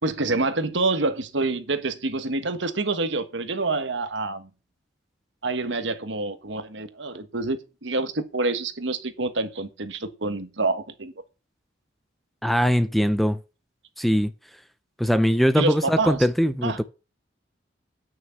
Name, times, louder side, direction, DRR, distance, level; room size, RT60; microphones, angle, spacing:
voice 1, 0.0-4.5 5.4-7.6 7.8-11.1 15.6-16.3 16.6-16.8, right 3 dB, 70° right, 1.4 m, -27 dB
voice 2, 12.4-13.4 14.0-14.3 15.0-16.8, equal, ahead, 0.5 m, -21 dB
9.2 x 6.4 x 7.0 m
head